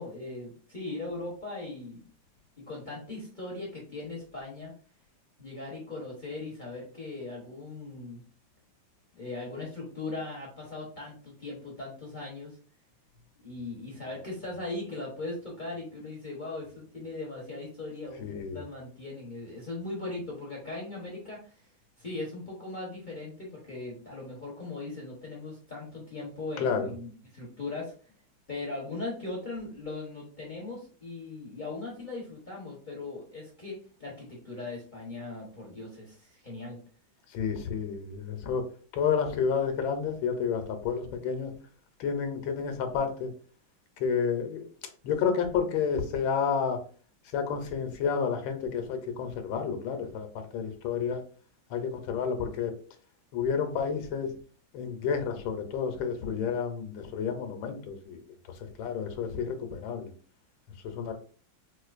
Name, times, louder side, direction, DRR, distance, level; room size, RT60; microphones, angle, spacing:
voice 1, 0.0-2.0 2.6-4.7 5.4-8.2 9.2-12.6 13.4-21.6 22.0-27.9 28.5-36.8, left 2 dB, 45° left, -3 dB, 0.6 m, -39 dB
voice 2, 18.2-18.6 26.6-26.9 37.3-38.6 38.9-41.5 42.0-43.3 44.0-44.7 45.0-46.8 47.3-51.2 51.7-52.7 53.3-54.3 54.7-58.2 58.8-60.1 60.8-61.1, left 6 dB, 80° left, 6 dB, 1.4 m, -30 dB
4.3 x 2.5 x 2.4 m, 0.41 s
omnidirectional pair, 2.2 m